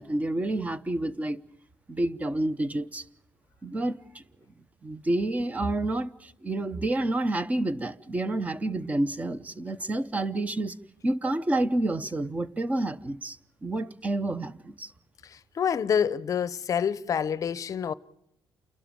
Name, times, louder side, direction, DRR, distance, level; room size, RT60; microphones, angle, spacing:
voice 1, 0.0-1.4 1.9-3.0 3.6-4.2 4.8-10.7 11.0-14.9, right 2 dB, 15° right, 0.8 m, -29 dB
voice 2, 15.6-17.9, left 7 dB, 40° left, 0.7 m, -27 dB
29.0 x 12.5 x 8.8 m
cardioid pair, 135°, 9 cm